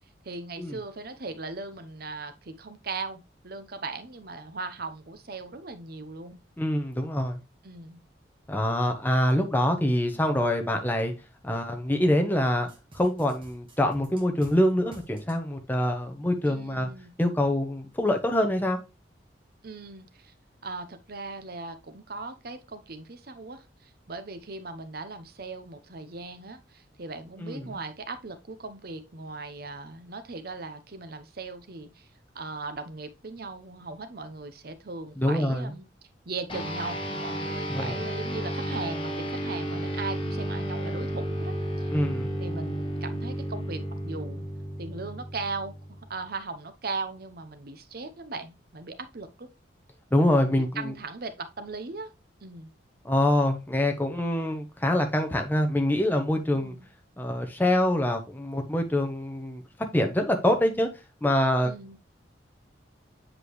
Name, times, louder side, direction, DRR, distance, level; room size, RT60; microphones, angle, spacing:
voice 1, 0.2-6.4 7.6-8.0 16.5-17.1 19.6-20.3 20.6-32.1 32.3-35.9 36.3-42.0 42.4-44.4 44.8-45.7 46.1-49.5 50.4-52.1 52.4-52.7 56.5-56.9 61.6-62.0, right 3 dB, 55° right, 0.8 m, -38 dB
voice 2, 6.6-7.4 8.5-11.1 11.4-12.7 12.9-16.9 17.2-18.8 27.4-27.7 35.2-35.7 37.7-38.0 41.9-42.3 50.1-50.9 53.0-56.7 57.2-59.6 59.9-60.9 61.2-61.7, left 1 dB, 10° left, 0.9 m, -25 dB
sound 1, 12.7-14.6 14.9-15.4, right 1 dB, 30° right, 1.5 m, -49 dB
sound 2, 36.5-46.2, equal, 30° left, 1.3 m, -33 dB
7.6 x 4.9 x 3.1 m
head